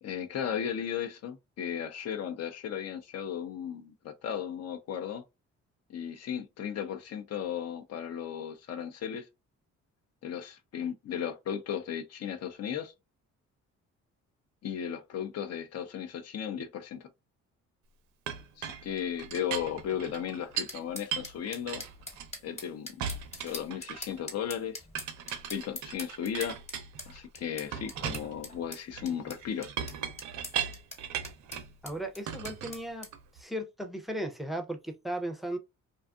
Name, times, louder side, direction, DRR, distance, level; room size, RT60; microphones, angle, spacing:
voice 1, 0.0-5.2 5.9-9.3 10.2-12.9 14.6-17.1 18.6-21.8 22.4-23.0 23.4-24.8 25.5-26.6 27.1-29.7, left 8 dB, 55° left, 0.6 m, -35 dB
Chink clink, 18.3-20.8 21.1-22.6 23.0-24.2 24.9-27.2 27.7-31.7 32.3-33.4, right 8 dB, 75° right, 0.6 m, -38 dB
sound 1, 20.7-33.1, left 2 dB, 20° left, 1.0 m, -44 dB
voice 2, 31.8-33.1 33.3-35.6, right 1 dB, ahead, 0.5 m, -36 dB
2.6 x 2.4 x 2.3 m
cardioid pair, 90°, 30 cm